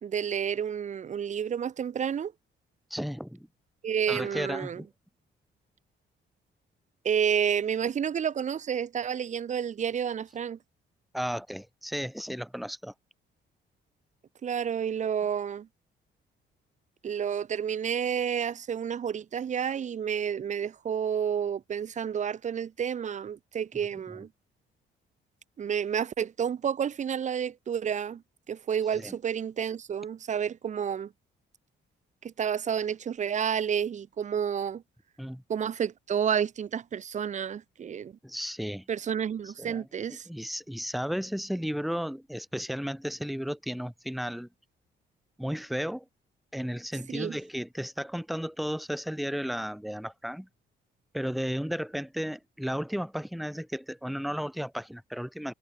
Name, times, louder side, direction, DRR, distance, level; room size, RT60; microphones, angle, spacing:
voice 1, 0.0-2.3 3.8-4.8 7.0-10.6 14.4-15.7 17.0-24.3 25.6-28.2 28.5-31.1 32.2-34.8 35.5-38.1 38.9-40.3 47.1-47.4, right 8 dB, 35° right, 0.5 m, -30 dB
voice 2, 2.9-3.5 4.1-4.9 11.1-12.9 28.9-29.1 35.2-35.4 38.2-38.8 39.6-39.9 40.3-44.5 45.4-46.0 46.5-50.5 51.1-55.5, equal, ahead, 0.9 m, -34 dB
cardioid pair, 90°, 20 cm